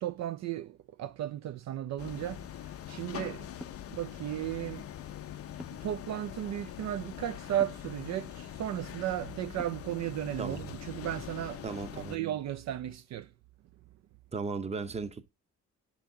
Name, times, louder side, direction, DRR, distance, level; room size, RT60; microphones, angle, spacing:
voice 1, 0.0-3.5 3.9-4.8 5.8-11.6 11.9-13.3, right 12 dB, 65° right, 0.5 m, -35 dB
sound 1, 2.0-12.2, left 11 dB, 50° left, 0.5 m, -43 dB
sound 2, 3.6-3.9 5.6-6.0 7.6-7.9 9.6-10.0, equal, ahead, 0.3 m, -46 dB
voice 2, 11.6-12.2 14.3-15.3, right 4 dB, 20° right, 0.7 m, -36 dB
10.5 x 4.0 x 2.7 m
cardioid pair, 90°, 30 cm